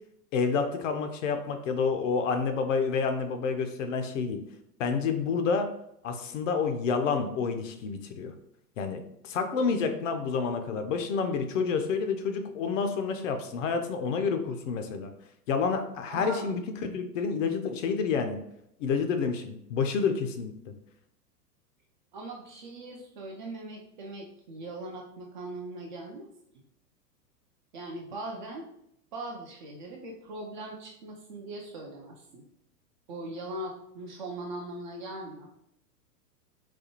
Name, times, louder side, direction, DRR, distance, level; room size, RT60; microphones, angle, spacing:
voice 1, 0.3-4.4 4.8-5.7 6.0-8.3 8.8-15.1 15.5-16.6 16.9-18.4 18.8-20.5, left 5 dB, 50° left, 6 dB, 0.5 m, -29 dB
voice 2, 16.1-16.5 22.1-26.3 27.7-28.7 29.1-32.4 33.1-35.5, right 2 dB, 35° right, 0 dB, 0.4 m, -40 dB
4.1 x 2.2 x 2.9 m, 0.75 s
hypercardioid pair, 110°, 50 cm